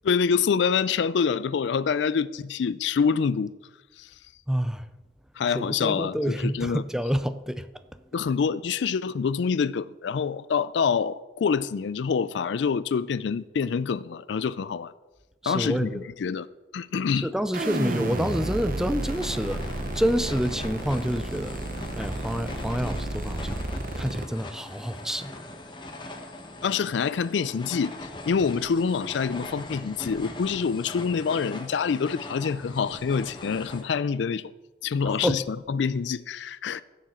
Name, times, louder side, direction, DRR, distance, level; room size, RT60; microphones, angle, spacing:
voice 1, 0.0-3.5 4.0-4.1 5.4-6.8 8.1-14.9 15.5-16.5 16.7-17.3 26.6-27.9 28.3-34.4 34.8-36.8, left 6 dB, 80° left, 0.4 m, -26 dB
voice 2, 4.5-4.8 5.5-7.6 15.4-16.1 17.2-19.6 19.9-21.6 22.0-23.6 24.0-25.4 35.0-35.4, equal, 5° right, 0.4 m, -28 dB
sound 1, 17.5-24.2, right 1 dB, 45° right, 1.0 m, -32 dB
sound 2, 19.0-33.8, left 2 dB, 25° left, 1.0 m, -41 dB
16.0 x 7.2 x 4.4 m
head